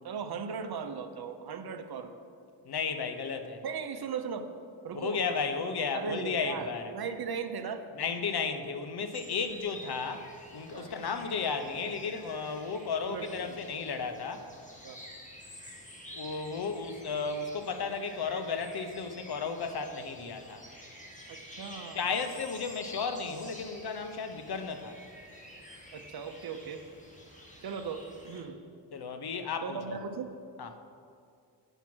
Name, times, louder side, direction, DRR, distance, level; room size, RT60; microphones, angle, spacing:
voice 1, 0.0-2.1 3.6-4.5 4.8-5.2 5.9-7.8 10.7-10.9 13.1-13.6 14.8-15.0 21.3-22.0 25.9-26.8 27.6-28.6 29.6-30.3, right 6 dB, 55° right, 7 dB, 0.8 m, -38 dB
voice 2, 2.6-3.6 4.9-6.9 7.9-14.5 16.1-20.6 21.9-25.0 28.9-30.0 30.6-30.7, left 5 dB, 60° left, 7 dB, 0.8 m, -34 dB
sound 1, 9.1-28.4, equal, 15° left, 1.7 m, -50 dB
9.0 x 6.0 x 6.0 m, 2.4 s
wide cardioid pair, 100°, 44 cm